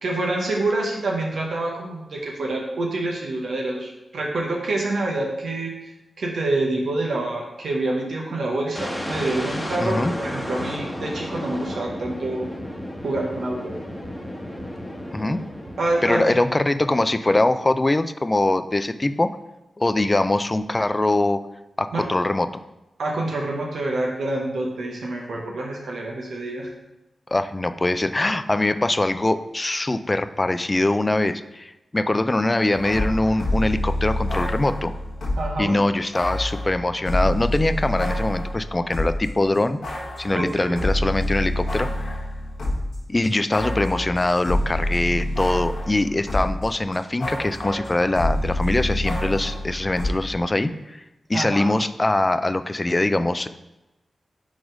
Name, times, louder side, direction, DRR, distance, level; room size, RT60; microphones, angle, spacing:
voice 1, 0.0-5.7 6.2-12.5 13.0-13.7 15.8-16.4 21.9-22.0 23.0-26.7 35.4-35.8 40.3-40.8 51.3-51.7, right 2 dB, 80° right, -2 dB, 0.9 m, -27 dB
sound 1, 8.8-16.6, left 1 dB, 10° left, 1.1 m, -33 dB
voice 2, 9.8-10.1 15.1-15.4 16.0-19.4 19.8-21.4 21.8-22.6 27.3-34.9 35.6-39.8 40.2-42.2 43.1-51.0 51.3-53.5, left 2 dB, 30° left, 11 dB, 0.4 m, -22 dB
sound 2, 32.7-35.6 36.1-39.3 39.5-46.7 46.9-50.1, left 1 dB, 80° left, 1.3 m, -27 dB
4.9 x 3.9 x 5.0 m, 0.95 s
cardioid pair, 50°, 0 cm